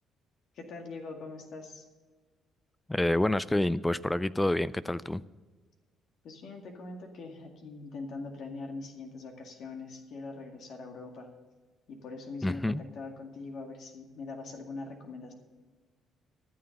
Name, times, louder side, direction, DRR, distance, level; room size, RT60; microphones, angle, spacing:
voice 1, 0.5-1.8 6.2-11.3 11.9-15.3, left 3 dB, 65° left, 3 dB, 2.0 m, -42 dB
voice 2, 2.9-5.2 12.4-12.8, left 1 dB, 10° left, 18 dB, 0.4 m, -28 dB
14.0 x 6.9 x 6.5 m, 1.4 s
supercardioid pair, 65°, 0 cm